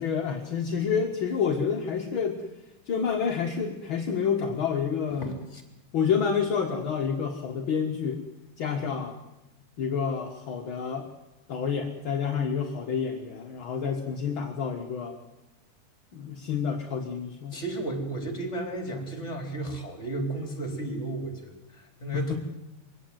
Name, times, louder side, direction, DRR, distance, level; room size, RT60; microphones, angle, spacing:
voice 1, 0.0-2.4 2.9-5.4 5.9-8.2 8.6-9.2 9.8-11.1 11.5-15.2 16.1-17.6 22.1-22.4, left 6 dB, 45° left, 3 dB, 1.8 m, -28 dB
voice 2, 5.2-5.6 17.5-22.4, right 2 dB, 20° left, 4 dB, 4.0 m, -33 dB
23.5 x 16.5 x 9.3 m, 0.99 s
omnidirectional pair, 3.9 m